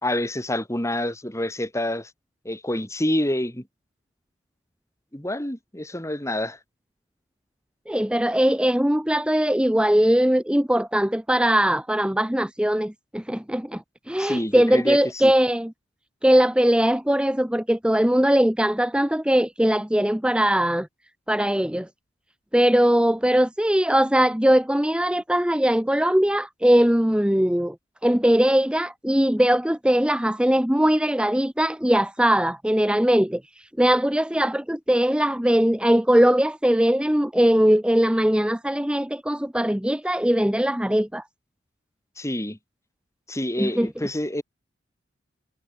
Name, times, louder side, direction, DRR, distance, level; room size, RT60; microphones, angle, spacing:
voice 1, 0.0-2.1 2.4-3.6 5.1-6.6 14.2-15.3 42.2-42.6 43.3-44.4, left 1 dB, 15° left, 2.9 m, -27 dB
voice 2, 7.9-15.7 16.2-20.9 21.3-21.9 22.5-27.7 28.0-41.2 43.6-43.9, equal, 5° right, 0.9 m, -20 dB
head